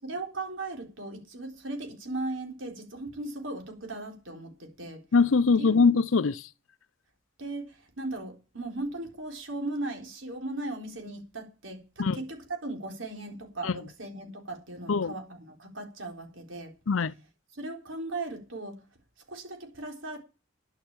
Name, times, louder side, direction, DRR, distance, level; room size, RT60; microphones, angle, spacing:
voice 1, 0.0-5.0 5.6-5.8 7.4-16.7 17.6-18.8 19.3-20.2, right 2 dB, 70° right, 4.2 m, -37 dB
voice 2, 5.1-6.5 12.0-12.2 13.6-13.8 14.9-15.2 16.9-17.1, left 4 dB, 85° left, 0.6 m, -22 dB
11.0 x 6.9 x 9.0 m
head